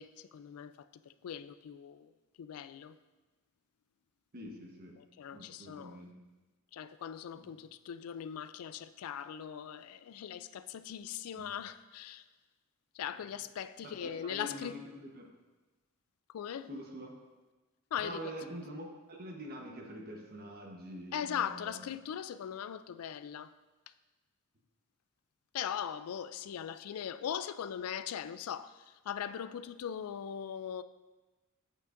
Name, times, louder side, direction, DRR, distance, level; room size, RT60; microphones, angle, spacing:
voice 1, 0.0-2.1 2.4-3.0 5.0-6.0 6.7-12.3 12.9-14.8 16.3-16.7 17.9-18.3 21.1-23.5 23.9-24.0 25.5-30.8, left 9 dB, 80° left, 0.3 m, -40 dB
voice 2, 4.3-5.0 5.3-6.1 7.3-7.5 11.4-11.5 13.8-15.3 16.7-17.2 18.0-21.8, equal, 45° right, 1.0 m, -45 dB
9.1 x 8.1 x 2.5 m
head